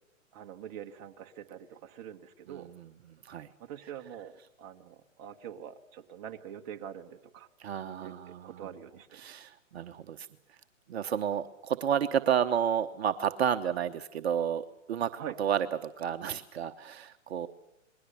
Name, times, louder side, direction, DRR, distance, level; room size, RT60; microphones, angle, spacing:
voice 1, 0.3-2.7 3.6-7.5 8.0-9.3 15.1-15.3, right 9 dB, 25° right, 4 dB, 1.5 m, -44 dB
voice 2, 2.5-3.5 7.6-8.7 9.1-10.3 10.9-15.1 15.4-17.5, right 9 dB, 50° right, 7 dB, 1.1 m, -31 dB
28.0 x 21.5 x 6.9 m, 0.87 s
hypercardioid pair, 145°, 39 cm